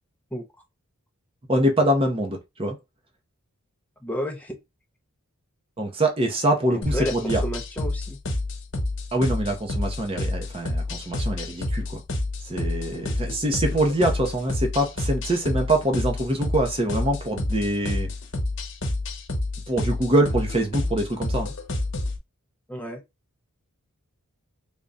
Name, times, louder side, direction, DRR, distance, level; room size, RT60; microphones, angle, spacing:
voice 1, 1.5-2.8 5.8-7.4 9.1-12.0 12.4-18.1 19.7-21.5, right 1 dB, 25° right, 0.7 m, -24 dB
voice 2, 4.0-4.6 6.7-7.1 7.4-8.2 22.7-23.0, equal, 5° left, 0.6 m, -31 dB
sound 1, 6.8-22.2, left 2 dB, 55° left, 0.9 m, -28 dB
3.5 x 2.2 x 3.9 m
head